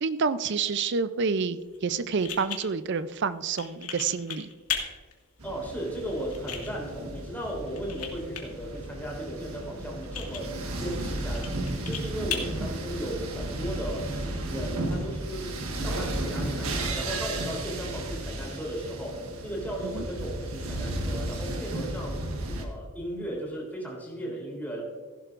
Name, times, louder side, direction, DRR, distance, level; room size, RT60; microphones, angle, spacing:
voice 1, 0.0-4.5 12.6-12.7 19.9-20.0, right 5 dB, 50° right, 14 dB, 0.5 m, -28 dB
sound 1, 1.6-13.6, left 7 dB, 90° left, 2.1 m, -40 dB
voice 2, 5.4-10.5 10.8-11.6 11.8-14.1 14.4-22.2 22.6-24.8, right 1 dB, 10° left, -2 dB, 3.3 m, -36 dB
sound 2, 5.4-22.6, right 1 dB, 70° right, 1.5 m, -34 dB
16.0 x 11.5 x 2.5 m, 1.4 s
head